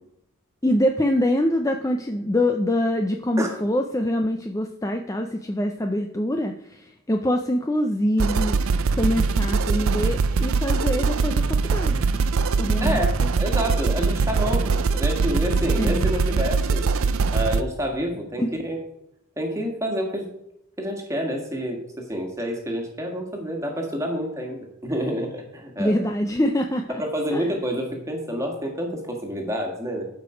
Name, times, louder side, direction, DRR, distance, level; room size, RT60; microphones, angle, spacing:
voice 1, 0.6-8.6 8.9-12.0 12.6-13.3 15.8-16.1 18.4-18.6 25.8-26.9 27.3-27.4, left 1 dB, 15° left, 4 dB, 0.5 m, -24 dB
sound 1, 8.2-17.6, right 4 dB, 75° right, 0.5 m, -22 dB
voice 2, 12.8-16.9 17.3-18.8 19.4-20.3 20.8-26.0 27.0-30.1, equal, 15° right, 2 dB, 1.8 m, -28 dB
12.5 x 5.2 x 5.0 m, 0.78 s
head